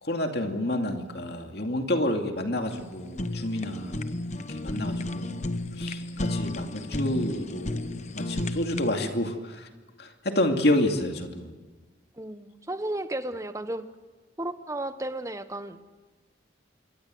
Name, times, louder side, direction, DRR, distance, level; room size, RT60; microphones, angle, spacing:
voice 1, 0.0-4.0 4.5-5.4 5.8-7.8 8.1-9.7 10.0-11.5, left 1 dB, 55° left, 4 dB, 2.6 m, -29 dB
Fire, 2.7-9.0, left 1 dB, 35° left, 1.0 m, -33 dB
voice 2, 12.2-13.8 14.4-15.9, right 1 dB, 15° right, 10 dB, 1.1 m, -34 dB
26.5 x 23.5 x 7.8 m, 1.3 s
head